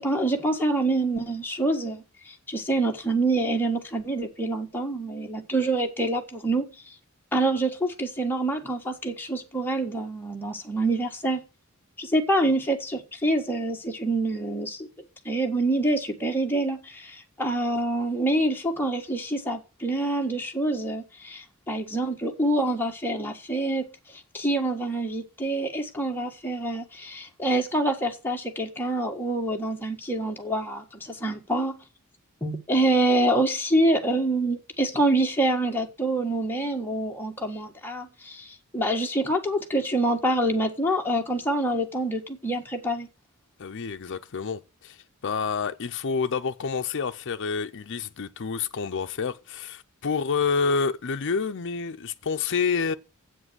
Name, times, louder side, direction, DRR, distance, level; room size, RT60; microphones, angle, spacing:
voice 1, 0.0-6.7 7.3-11.4 12.0-14.9 15.2-31.8 32.4-43.1, right 1 dB, 10° left, 1.5 m, -26 dB
voice 2, 43.6-45.0 45.2-52.9, left 5 dB, 55° left, 0.6 m, -28 dB
8.0 x 7.5 x 8.0 m
head